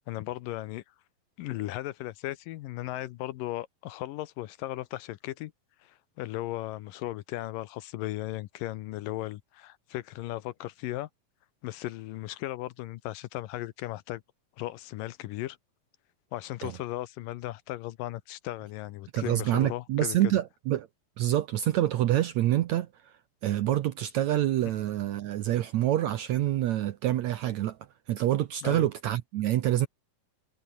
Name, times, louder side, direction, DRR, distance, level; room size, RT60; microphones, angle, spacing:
voice 1, 0.1-0.8 1.4-5.5 5.8-11.1 11.6-14.2 14.6-15.6 16.3-20.3 24.6-24.7 28.6-28.9, left 15 dB, 75° left, 2.4 m, -36 dB
voice 2, 19.1-20.9 21.2-23.1 23.4-27.8 28.1-29.9, right 13 dB, 70° right, 1.7 m, -27 dB
omnidirectional pair, 4.2 m